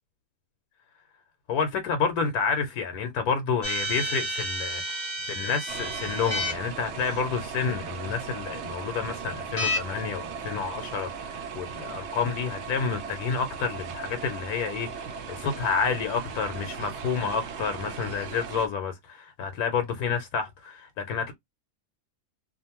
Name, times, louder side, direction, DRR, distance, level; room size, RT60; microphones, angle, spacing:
voice 1, 1.5-21.3, left 6 dB, 75° left, 1.1 m, -29 dB
sound 1, 3.6-6.5 9.6-9.8, equal, 40° left, 0.8 m, -30 dB
sound 2, 5.7-18.7, right 6 dB, 70° right, 0.6 m, -38 dB
2.5 x 2.4 x 2.8 m
omnidirectional pair, 1.6 m